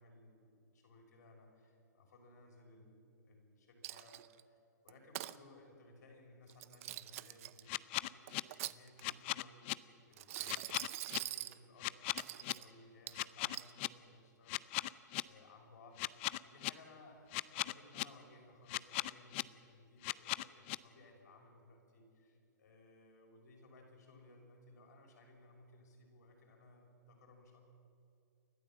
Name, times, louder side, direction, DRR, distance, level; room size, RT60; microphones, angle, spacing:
voice 1, 0.0-4.6 4.8-14.9 15.2-27.6, left 2 dB, 65° left, 1 dB, 6.2 m, -61 dB
Coin (dropping), 3.8-4.4 4.9-5.4 6.5-7.6 8.3-9.2 10.1-11.6 12.2-12.7 13.1-13.7, right 16 dB, 50° right, 0.7 m, -44 dB
sound 1, 7.7-8.4 9.0-9.7 10.5-11.2 11.8-12.5 13.1-13.9 14.5-15.2 16.0-16.7 17.3-18.0 18.7-19.4 20.0-20.8, left 21 dB, 40° left, 0.5 m, -37 dB
29.5 x 12.5 x 7.6 m, 2.6 s
hypercardioid pair, 130°, 10 cm